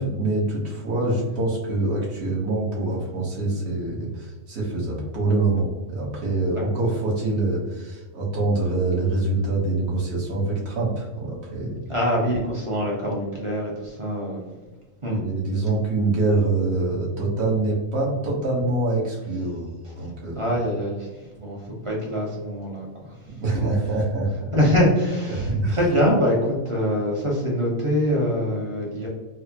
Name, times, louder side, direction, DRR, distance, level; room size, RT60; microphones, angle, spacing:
voice 1, 0.0-11.8 15.1-20.4 23.3-24.5 25.3-25.8, right 2 dB, 55° right, -4 dB, 1.2 m, -25 dB
voice 2, 11.9-14.5 15.0-15.2 19.8-19.9 20.3-23.7 24.5-29.1, equal, 30° right, -3 dB, 0.6 m, -24 dB
4.3 x 2.0 x 2.8 m, 1.3 s
omnidirectional pair, 1.3 m